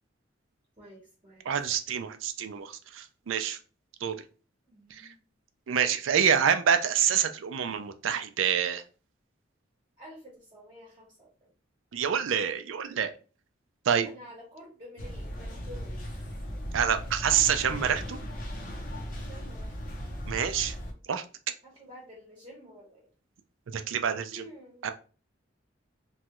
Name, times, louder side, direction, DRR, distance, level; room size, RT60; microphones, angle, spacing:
voice 1, 0.8-1.5 4.6-5.2 10.0-11.5 14.0-16.0 19.2-19.8 21.6-23.1 24.3-24.9, equal, 25° right, -5 dB, 0.9 m, -50 dB
voice 2, 1.4-3.6 4.0-4.2 4.9-5.1 5.7-8.8 11.9-13.1 13.9-14.1 16.7-18.2 20.3-20.8 21.1-21.2 23.7-24.4 24.8-24.9, right 8 dB, 80° right, 8 dB, 0.4 m, -27 dB
sound 1, 15.0-20.9, equal, 45° left, 0.6 m, -37 dB
3.0 x 2.3 x 2.9 m, 0.36 s
head